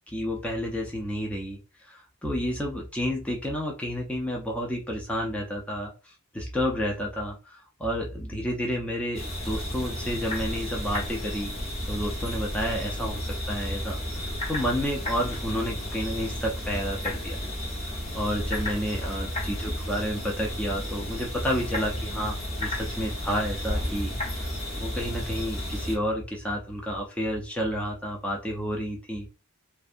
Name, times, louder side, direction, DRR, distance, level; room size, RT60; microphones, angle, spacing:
voice 1, 0.1-11.5 11.9-17.4 17.8-24.5 24.8-29.3, equal, 5° left, -2 dB, 0.4 m, -31 dB
sound 1, 9.1-26.0, equal, 30° left, 0.7 m, -32 dB
2.5 x 2.1 x 2.5 m, 0.32 s
head